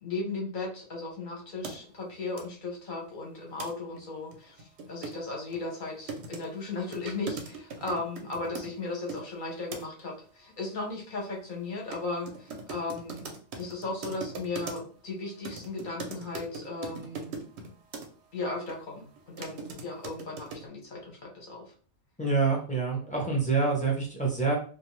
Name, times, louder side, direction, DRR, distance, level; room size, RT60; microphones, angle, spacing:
voice 1, 0.0-17.4 18.3-21.6, left 3 dB, 45° left, 0 dB, 0.8 m, -36 dB
sound 1, 1.6-1.8 2.4-2.5 3.6-3.7 4.0-4.1 4.3-9.2 9.7-10.0 11.9-12.0 12.3-15.0 15.4-18.1 18.7-18.8 19.2-20.7, right 4 dB, 65° right, 0.7 m, -40 dB
voice 2, 22.2-24.5, right 4 dB, 10° left, -2 dB, 0.3 m, -26 dB
2.5 x 2.2 x 3.0 m, 0.42 s
omnidirectional pair, 1.5 m